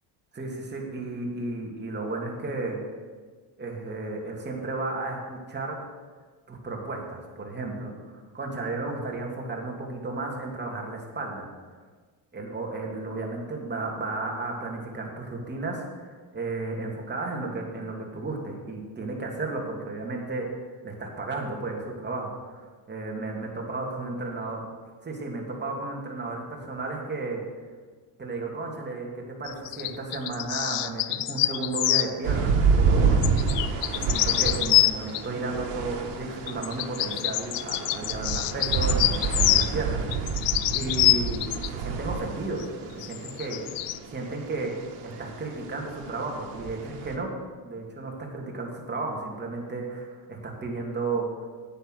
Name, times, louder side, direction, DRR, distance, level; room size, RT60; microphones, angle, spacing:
voice 1, 0.3-2.8 3.6-5.8 6.5-11.5 12.3-16.1 16.3-20.5 20.8-22.6 22.9-24.6 25.0-27.4 28.2-43.6 44.1-44.7 45.0-47.3 47.6-51.2, right 3 dB, 25° right, -1 dB, 2.6 m, -33 dB
sound 1, 29.5-32.1 33.2-35.3 36.5-39.7 40.1-41.7 42.6-42.7 43.0-44.0, left 16 dB, 90° left, 0.6 m, -25 dB
sound 2, 32.2-47.1, right 5 dB, 85° right, 1.5 m, -29 dB
9.9 x 8.6 x 6.5 m, 1.5 s
cardioid pair, 110°, 41 cm